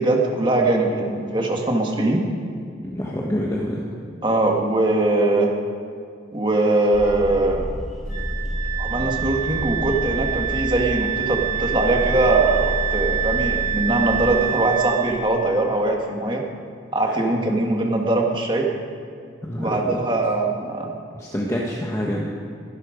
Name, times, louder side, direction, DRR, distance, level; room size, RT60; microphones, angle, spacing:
voice 1, 0.0-2.2 4.2-5.5 6.3-7.7 8.8-16.4 16.9-18.7 19.6-21.0, right 2 dB, 25° right, 0 dB, 1.8 m, -21 dB
voice 2, 2.8-3.9 17.1-17.2 19.4-20.0 21.1-22.3, equal, 15° left, -3 dB, 1.3 m, -27 dB
sound 1, 6.9-14.4, equal, ahead, 2.5 m, -30 dB
Wind instrument woodwind instrument, 8.1-15.1, right 10 dB, 90° right, 3.8 m, -27 dB
22.5 x 12.0 x 5.2 m, 2.3 s
head